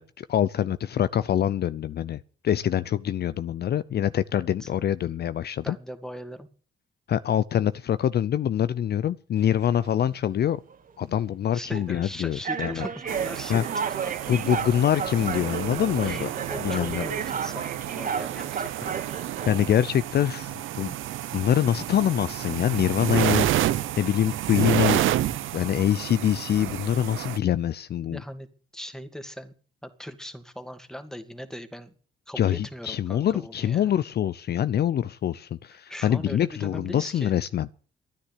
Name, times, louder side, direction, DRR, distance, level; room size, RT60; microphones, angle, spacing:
voice 1, 0.0-5.8 7.1-10.6 11.0-12.9 13.5-13.6 14.3-17.0 19.5-20.9 21.3-25.0 25.5-28.2 32.4-37.7, left 10 dB, 55° left, 0.6 m, -25 dB
voice 2, 4.3-4.7 5.6-6.5 11.5-14.1 16.0-19.0 28.1-28.5 28.7-29.5 29.8-31.9 32.3-33.9 35.9-37.3, equal, 5° left, 2.3 m, -40 dB
sound 1, 9.4-10.0 10.7-10.9 11.7-11.9 12.4-19.7, right 6 dB, 45° right, 2.0 m, -33 dB
sound 2, 13.1-27.4, right 13 dB, 80° right, 0.9 m, -30 dB
13.0 x 9.9 x 8.4 m
cardioid pair, 90°, 20 cm